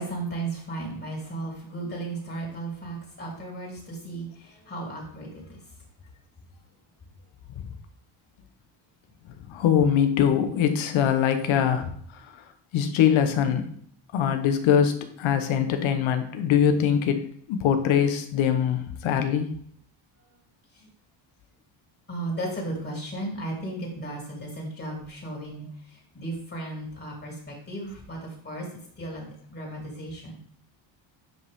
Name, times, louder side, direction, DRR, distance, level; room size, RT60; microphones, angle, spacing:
voice 1, 0.0-5.6 20.7-20.9 22.1-30.4, right 2 dB, 30° left, -3 dB, 3.5 m, -35 dB
voice 2, 9.5-12.4 12.7-13.7 14.1-19.5, left 8 dB, 75° left, 8 dB, 1.2 m, -23 dB
9.3 x 5.2 x 3.7 m, 0.62 s
cardioid pair, 105°, 47 cm